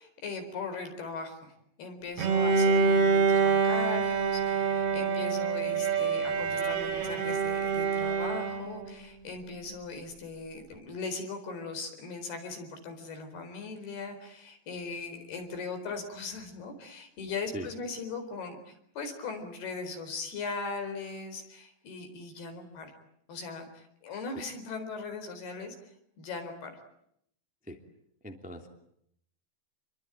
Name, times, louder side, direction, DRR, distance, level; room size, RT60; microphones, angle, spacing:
voice 1, 0.0-22.9 23.3-25.8 26.2-26.8, left 4 dB, 65° left, 6 dB, 6.1 m, -39 dB
Bowed string instrument, 2.2-8.9, right 5 dB, 90° right, 5.4 m, -26 dB
voice 2, 28.2-28.7, equal, 5° right, 4 dB, 1.8 m, -40 dB
28.5 x 22.5 x 9.1 m, 0.73 s
omnidirectional pair, 4.9 m